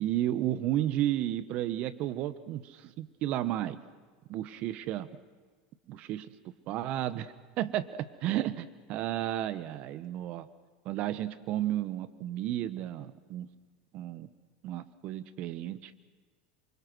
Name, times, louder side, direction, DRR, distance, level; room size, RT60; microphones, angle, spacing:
voice 1, 0.0-3.8 4.3-5.1 5.9-6.3 6.7-10.5 10.8-13.5 13.9-14.3 14.6-15.9, right 13 dB, 55° right, 14 dB, 1.2 m, -33 dB
27.5 x 24.5 x 6.3 m, 1.4 s
hypercardioid pair, 85°, 3 cm